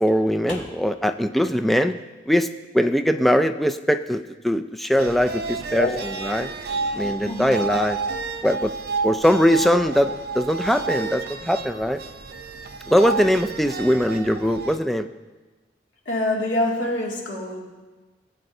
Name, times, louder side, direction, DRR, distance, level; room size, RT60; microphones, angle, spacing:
voice 1, 0.0-2.0 2.3-5.9 6.2-6.5 6.9-8.0 8.4-8.7 9.0-12.0 12.9-15.1, equal, ahead, 8 dB, 0.3 m, -21 dB
sound 1, 5.0-14.8, right 4 dB, 55° right, 0.6 m, -31 dB
voice 2, 6.4-7.7 16.1-17.6, left 2 dB, 90° left, -2 dB, 2.3 m, -27 dB
17.0 x 7.7 x 2.7 m, 1.2 s
head